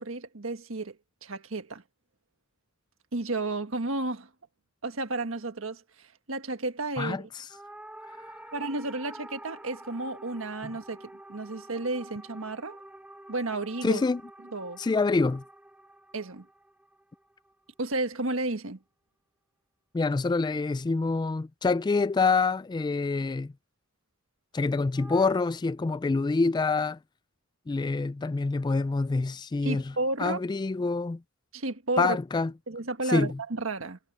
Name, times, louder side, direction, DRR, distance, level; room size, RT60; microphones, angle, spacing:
voice 1, 0.0-1.8 3.1-4.3 4.8-7.3 8.5-12.8 13.3-14.0 14.5-14.8 16.1-16.5 17.8-18.8 29.6-30.4 31.5-32.2 32.7-34.0, right 2 dB, 75° right, 1.6 m, -32 dB
sound 1, 7.5-18.0 24.9-25.3, right 1 dB, 5° right, 1.0 m, -48 dB
voice 2, 13.8-14.2 14.8-15.4 19.9-23.5 24.5-27.0 27.7-29.8 30.2-31.2 32.0-32.5 33.1-33.3, left 3 dB, 20° left, 0.3 m, -26 dB
head